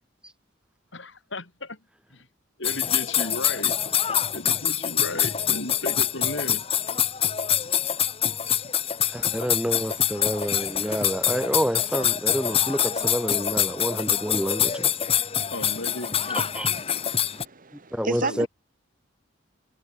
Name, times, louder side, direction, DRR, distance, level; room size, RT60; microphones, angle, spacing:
voice 1, 0.9-1.8 2.1-2.3 2.6-3.8 4.3-6.6 15.5-16.4 18.2-18.5, left 2 dB, 65° left, 5.4 m, -34 dB
sound 1, 2.6-17.5, left 9 dB, 30° left, 1.0 m, -25 dB
voice 2, 9.1-14.9 16.3-16.7 17.9-18.5, equal, 5° right, 4.0 m, -28 dB
voice 3, 17.3-18.5, right 3 dB, 45° right, 1.4 m, -31 dB
head